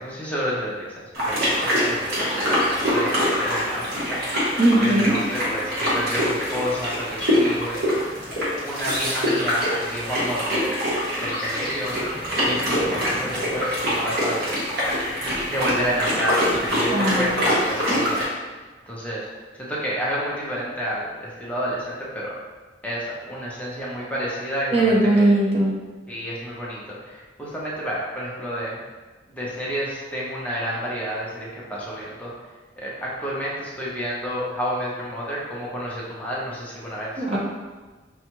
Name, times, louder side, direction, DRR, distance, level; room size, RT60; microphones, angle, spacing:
voice 1, 0.0-4.5 4.8-7.9 8.6-10.8 11.2-11.9 12.4-14.6 15.4-18.6 18.9-19.3 19.6-22.3 22.8-25.3 26.1-28.8 29.3-32.3 32.8-37.4, equal, 10° left, -6 dB, 0.7 m, -30 dB
sound 1, 1.1-18.2, equal, 55° right, 1.2 m, -24 dB
voice 2, 4.6-5.2 16.9-17.4 24.7-25.7 37.2-37.4, right 1 dB, 35° right, -4 dB, 0.6 m, -19 dB
5.3 x 2.3 x 3.0 m, 1.3 s
head